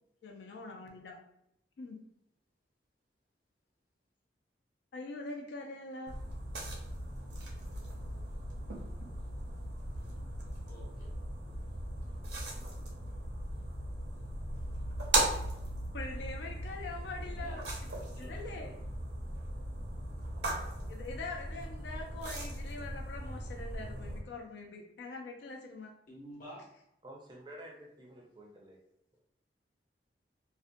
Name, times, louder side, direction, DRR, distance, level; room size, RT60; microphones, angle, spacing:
voice 1, 0.2-1.2 1.8-2.0 4.9-6.2 15.9-17.9 18.2-18.7 20.9-25.9, left 3 dB, 80° left, 1 dB, 0.4 m, -43 dB
sound 1, 6.1-24.2, right 1 dB, 70° right, 0.6 m, -38 dB
voice 2, 10.7-11.1 16.7-16.8 17.3-17.6 18.0-18.8 26.1-26.6, equal, 50° left, -4 dB, 0.8 m, -50 dB
voice 3, 27.0-28.8, right 1 dB, 25° right, -1 dB, 0.4 m, -50 dB
2.5 x 2.1 x 2.5 m, 0.78 s
head